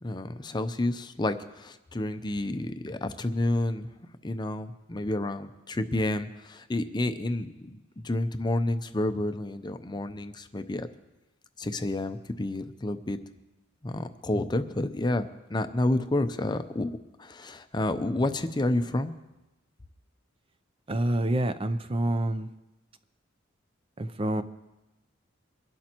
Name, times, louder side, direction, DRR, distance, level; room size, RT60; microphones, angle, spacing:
voice 1, 0.0-3.9 4.2-10.9 11.6-13.2 13.8-16.9 17.2-19.1, left 1 dB, 20° left, 0.6 m, -30 dB
voice 2, 20.9-22.5 24.0-24.4, right 1 dB, 25° right, 0.5 m, -27 dB
24.0 x 12.0 x 3.0 m
head